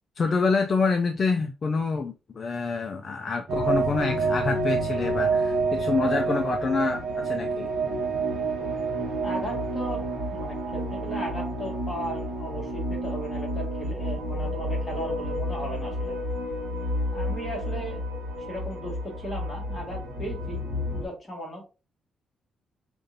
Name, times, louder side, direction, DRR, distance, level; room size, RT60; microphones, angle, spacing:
voice 1, 0.2-7.7, left 4 dB, 30° left, 0.3 m, -27 dB
sound 1, 3.5-21.1, right 2 dB, 60° right, 1.0 m, -29 dB
voice 2, 9.2-10.0 10.3-16.2 17.1-18.0 18.5-20.6 20.9-21.6, right 1 dB, 15° left, 1.6 m, -36 dB
5.2 x 2.5 x 2.6 m
cardioid pair, 180°, 0 cm